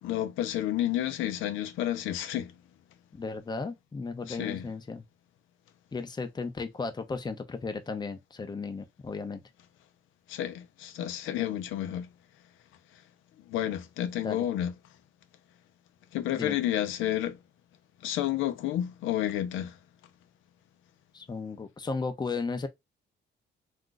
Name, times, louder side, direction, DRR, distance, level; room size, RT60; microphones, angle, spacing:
voice 1, 0.0-2.5 4.3-4.7 10.3-12.1 13.5-14.7 16.1-17.4 18.0-19.8, left 12 dB, 85° left, 0.5 m, -30 dB
voice 2, 3.1-5.0 5.9-9.4 14.2-14.5 16.3-16.6 21.1-22.7, left 4 dB, 20° left, 0.6 m, -35 dB
2.5 x 2.3 x 3.8 m
cardioid pair, 90°, 20 cm